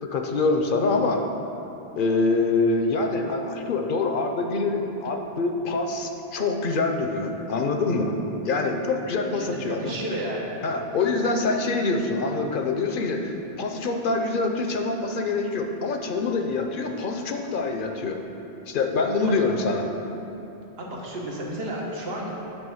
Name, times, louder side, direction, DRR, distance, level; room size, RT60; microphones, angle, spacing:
voice 1, 0.0-1.2 2.0-8.2 8.4-10.0 10.6-18.2 18.7-19.9, left 3 dB, 60° left, 4 dB, 0.8 m, -25 dB
voice 2, 9.3-10.6 11.2-11.3 19.2-19.5 20.8-22.3, right 1 dB, 75° right, -3 dB, 1.5 m, -32 dB
10.0 x 3.5 x 7.1 m, 3.0 s
omnidirectional pair, 1.0 m